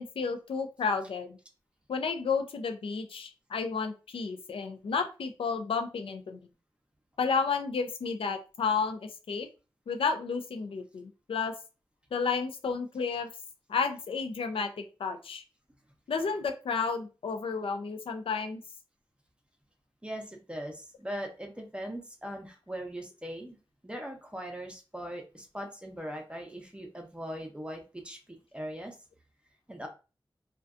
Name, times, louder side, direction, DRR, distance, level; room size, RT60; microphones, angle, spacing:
voice 1, 0.0-1.4 1.9-6.5 7.2-9.5 9.9-11.5 12.1-13.3 13.7-15.4 16.1-18.6, left 5 dB, 90° left, 6 dB, 0.4 m, -32 dB
voice 2, 20.0-23.6 23.8-29.0 29.7-29.9, equal, 10° right, 2 dB, 0.6 m, -40 dB
2.5 x 2.2 x 2.3 m, 0.32 s
wide cardioid pair, 65°, 9 cm